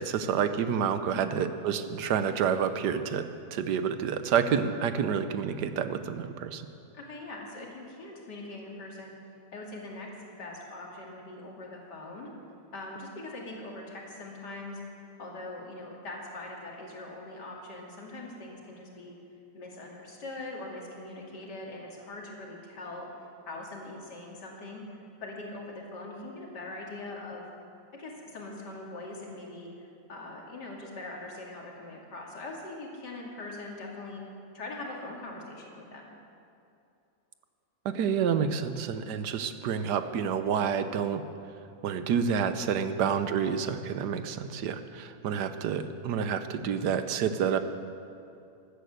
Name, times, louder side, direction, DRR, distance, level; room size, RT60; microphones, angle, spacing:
voice 1, 0.0-6.6 37.9-41.2 41.8-47.6, right 7 dB, 80° right, 10 dB, 1.4 m, -29 dB
voice 2, 1.1-1.4 6.9-9.1 9.5-10.1 10.4-12.3 12.7-14.8 15.2-19.2 19.5-23.1 23.5-27.5 27.9-34.2 34.5-36.1 42.8-43.1, left 2 dB, 85° left, -1 dB, 2.9 m, -42 dB
13.5 x 12.0 x 7.9 m, 2.6 s
omnidirectional pair, 1.8 m